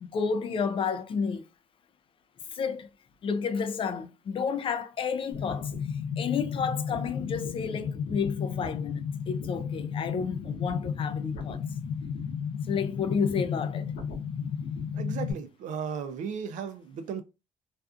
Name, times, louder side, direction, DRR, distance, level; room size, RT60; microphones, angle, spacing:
voice 1, 0.0-1.5 2.5-2.9 3.2-5.7 6.2-11.6 12.7-13.9, left 6 dB, 40° left, 0.3 m, -31 dB
sound 1, 5.3-15.3, left 6 dB, 75° left, 0.7 m, -33 dB
voice 2, 14.9-17.2, right 7 dB, 75° right, 0.5 m, -35 dB
2.5 x 2.3 x 2.4 m
cardioid pair, 115°, 13 cm